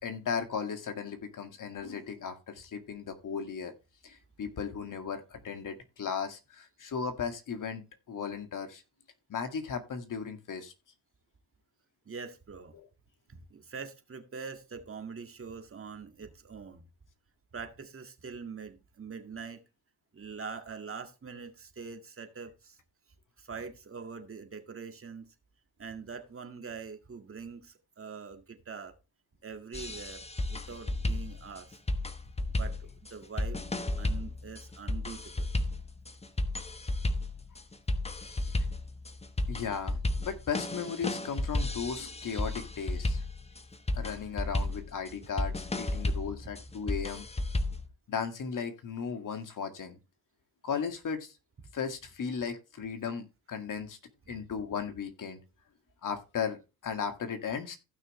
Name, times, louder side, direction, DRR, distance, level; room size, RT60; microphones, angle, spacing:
voice 1, 0.0-3.7 4.0-8.8 9.3-10.7 12.7-12.9 38.2-38.5 39.5-43.2 43.9-47.3 48.1-50.0 50.6-51.3 51.7-54.0 54.3-55.4 56.0-57.8, left 6 dB, 50° left, 2.1 m, -36 dB
voice 2, 12.1-12.8 13.3-16.9 17.5-19.6 20.1-22.8 23.4-25.3 25.8-29.0 29.4-30.2 30.5-31.8 32.5-33.6 34.0-35.5, right 5 dB, 35° right, 1.9 m, -43 dB
sound 1, 29.7-47.9, left 2 dB, 15° left, 1.2 m, -33 dB
15.5 x 6.1 x 3.2 m
supercardioid pair, 75°, 39 cm